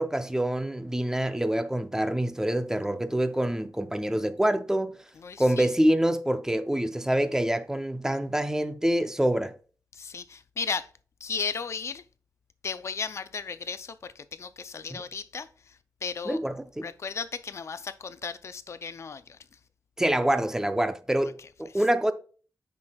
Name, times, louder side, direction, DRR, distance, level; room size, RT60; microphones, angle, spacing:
voice 1, 0.0-5.0 5.4-9.5 14.9-15.0 16.3-16.9 20.0-22.1, right 1 dB, 10° right, 0.5 m, -26 dB
voice 2, 5.2-5.7 9.9-10.9 11.2-12.0 12.6-16.4 16.8-19.4 21.4-21.5 21.7-21.8, left 5 dB, 50° left, 0.4 m, -35 dB
9.5 x 6.0 x 2.2 m
wide cardioid pair, 175°, 6 cm